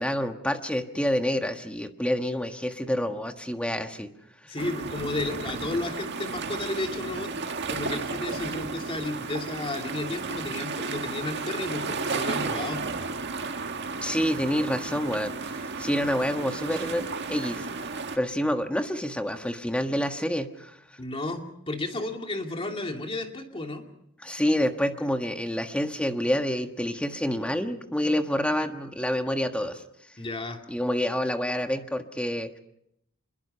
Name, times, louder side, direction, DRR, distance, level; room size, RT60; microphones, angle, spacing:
voice 1, 0.0-4.1 14.0-17.7 18.1-20.7 24.2-29.8 30.7-32.6, equal, 5° left, 6 dB, 1.4 m, -28 dB
voice 2, 4.5-7.3 7.7-12.8 21.0-23.8 30.2-30.6, left 2 dB, 25° left, 3 dB, 2.6 m, -33 dB
sound 1, 4.6-18.2, right 4 dB, 50° right, 1.8 m, -33 dB
26.5 x 22.0 x 5.7 m, 0.78 s
head